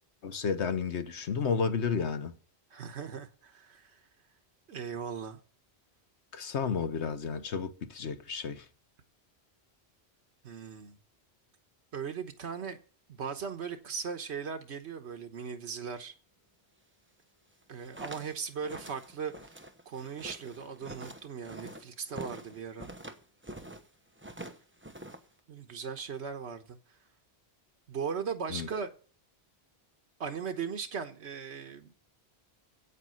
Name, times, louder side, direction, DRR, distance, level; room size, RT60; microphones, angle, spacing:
voice 1, 0.2-2.3 6.3-8.6 28.5-28.7, left 6 dB, 90° left, 1.4 m, -32 dB
voice 2, 2.7-4.0 4.7-5.4 10.4-11.0 11.9-12.8 13.1-16.1 17.7-19.5 19.9-22.9 25.5-26.8 27.9-28.9 30.2-31.9, right 6 dB, 80° right, 1.4 m, -38 dB
sound 1, 17.6-23.9 24.2-25.4, right 1 dB, 10° right, 0.9 m, -46 dB
8.6 x 8.3 x 7.8 m
omnidirectional pair, 1.1 m